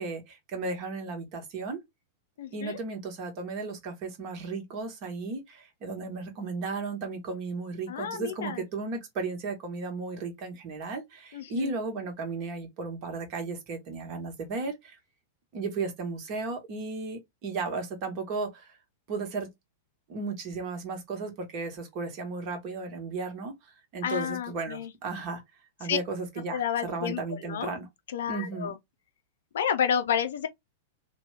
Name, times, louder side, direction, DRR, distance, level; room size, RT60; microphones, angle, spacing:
voice 1, 0.0-1.8 2.5-15.0 15.5-18.8 19.1-19.5 20.1-25.4 25.8-27.9 28.3-28.7, right 3 dB, 40° right, 1.2 m, -35 dB
voice 2, 2.4-2.8 7.9-8.6 11.3-11.7 24.0-24.9 25.8-26.0 26.5-27.7 28.1-28.8 29.5-30.5, left 8 dB, 65° left, 0.5 m, -30 dB
2.8 x 2.2 x 3.2 m
figure-of-eight pair, 95°, 0 cm